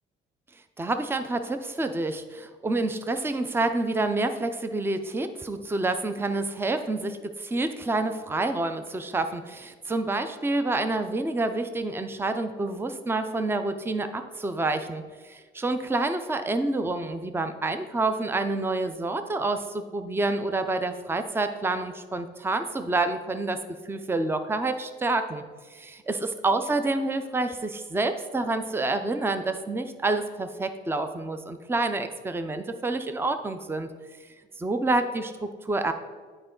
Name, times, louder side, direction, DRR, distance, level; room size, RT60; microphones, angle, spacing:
voice 1, 0.8-23.6 23.8-25.4 25.7-33.9 34.6-35.9, right 2 dB, 10° right, 9 dB, 0.5 m, -28 dB
9.3 x 4.4 x 3.8 m, 1.5 s
cardioid pair, 90°, 20 cm